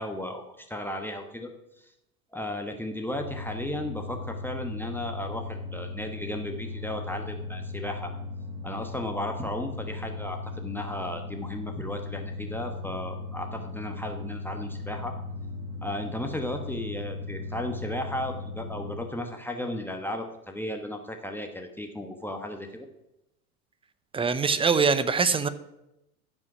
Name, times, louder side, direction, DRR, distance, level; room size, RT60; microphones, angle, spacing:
voice 1, 0.0-1.5 1.8-1.9 2.3-8.1 8.6-15.1 15.8-22.9, left 1 dB, 5° left, 3 dB, 1.1 m, -35 dB
sound 1, 3.1-19.2, left 3 dB, 35° right, 1.6 m, -37 dB
voice 2, 24.1-25.5, right 5 dB, 10° right, 13 dB, 0.6 m, -23 dB
14.5 x 5.4 x 6.1 m, 0.87 s
hypercardioid pair, 90°, 45 cm